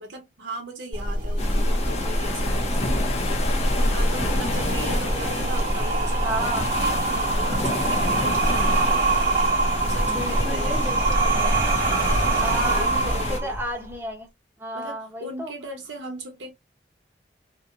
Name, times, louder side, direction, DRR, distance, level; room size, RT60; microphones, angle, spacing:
voice 1, 0.0-8.9 9.8-10.8 11.8-13.6 14.7-16.5, right 1 dB, 90° right, 1.0 m, -38 dB
sound 1, 0.9-13.9, right 2 dB, 45° right, 1.1 m, -24 dB
sound 2, 1.4-13.4, left 2 dB, 35° left, 0.6 m, -29 dB
voice 2, 6.2-6.7 10.1-11.6 12.4-14.3 14.6-15.5, right 1 dB, 10° right, 0.8 m, -32 dB
2.7 x 2.0 x 2.4 m
head